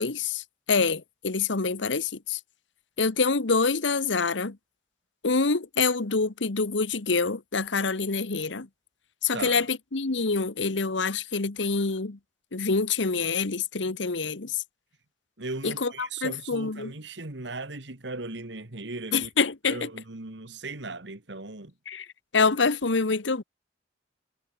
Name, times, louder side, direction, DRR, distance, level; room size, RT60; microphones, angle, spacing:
voice 1, 0.0-2.4 3.0-4.6 5.2-8.7 9.2-12.2 12.5-14.6 15.6-16.9 19.1-19.9 21.9-22.1 22.3-23.4, left 4 dB, 85° left, 1.2 m, -26 dB
voice 2, 9.3-9.7 15.4-19.3 19.7-21.7, right 3 dB, 75° right, 2.2 m, -37 dB
head